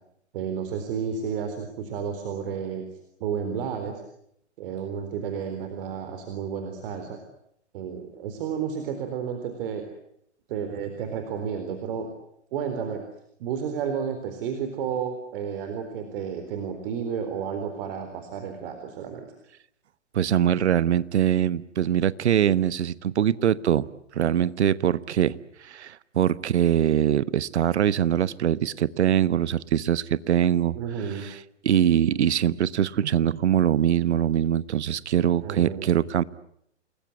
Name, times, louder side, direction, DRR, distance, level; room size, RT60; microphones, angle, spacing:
voice 1, 0.3-2.9 3.2-4.0 4.6-7.2 7.7-9.9 10.5-12.1 12.5-13.0 13.4-19.3 30.7-31.3 35.4-35.9, right 7 dB, 50° right, 7 dB, 4.1 m, -31 dB
voice 2, 20.1-23.9 24.1-25.3 25.6-30.7 31.6-36.2, right 10 dB, 65° right, 18 dB, 1.1 m, -23 dB
29.0 x 20.5 x 9.5 m, 0.76 s
figure-of-eight pair, 115°, 35 cm